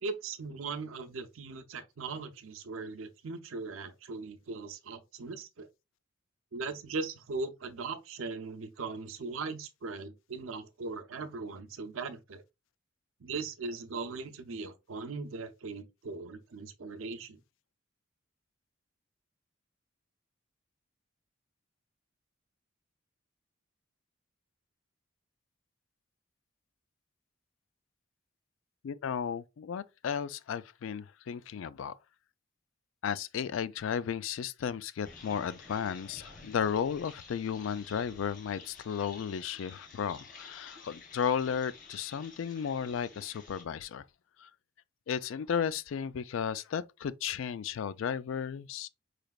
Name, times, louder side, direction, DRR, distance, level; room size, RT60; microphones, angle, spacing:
voice 1, 0.0-5.7 6.5-12.4 13.2-17.4, right 4 dB, 85° right, 0.6 m, -39 dB
voice 2, 28.8-31.9 33.0-44.0 44.4-44.5 45.1-48.9, left 7 dB, 75° left, 0.3 m, -34 dB
sound 1, 35.0-43.6, left 4 dB, 40° left, 1.0 m, -52 dB
4.8 x 3.2 x 2.3 m
head